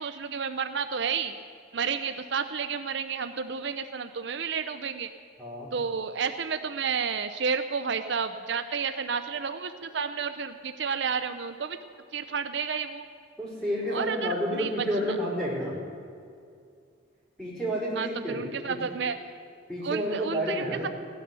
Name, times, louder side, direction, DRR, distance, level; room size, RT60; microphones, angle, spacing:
voice 1, 0.0-1.3 1.7-5.1 5.7-11.8 12.1-13.0 13.9-14.7 18.0-19.2 19.8-20.9, right 6 dB, 65° right, 9 dB, 0.6 m, -31 dB
voice 2, 5.4-5.7 13.4-15.7 17.4-18.8 19.7-20.9, equal, 5° left, -7 dB, 4.9 m, -30 dB
16.5 x 10.5 x 6.8 m, 2.3 s
head